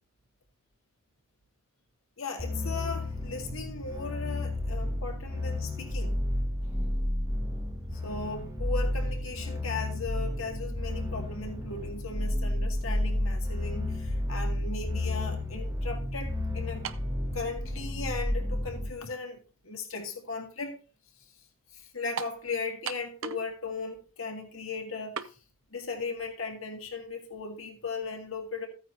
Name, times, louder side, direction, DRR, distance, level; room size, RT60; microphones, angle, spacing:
voice 1, 2.2-6.2 8.0-16.8 17.3-20.8 21.7-25.2 25.7-28.7, left 4 dB, 75° left, 2.1 m, -37 dB
sound 1, 2.4-18.9, left 1 dB, 15° right, 1.6 m, -31 dB
sound 2, 16.8-17.1 18.0-18.1 22.2-22.4 22.9-23.5 23.8-23.9 25.2-25.3, right 6 dB, 65° right, 0.6 m, -36 dB
14.5 x 9.3 x 2.7 m
head